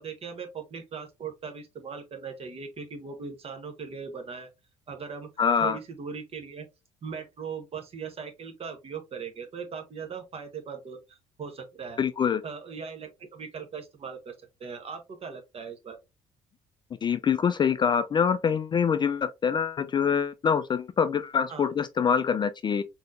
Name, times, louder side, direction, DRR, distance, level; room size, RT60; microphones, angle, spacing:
voice 1, 0.0-4.5 4.9-5.3 5.6-6.7 7.0-12.0 12.4-14.3 14.6-16.0 21.5-21.7, right 6 dB, 40° right, 1.1 m, -39 dB
voice 2, 5.4-5.8 12.0-12.4 17.0-22.8, left 7 dB, 30° left, 0.4 m, -25 dB
4.1 x 2.9 x 2.5 m
hypercardioid pair, 55°, 16 cm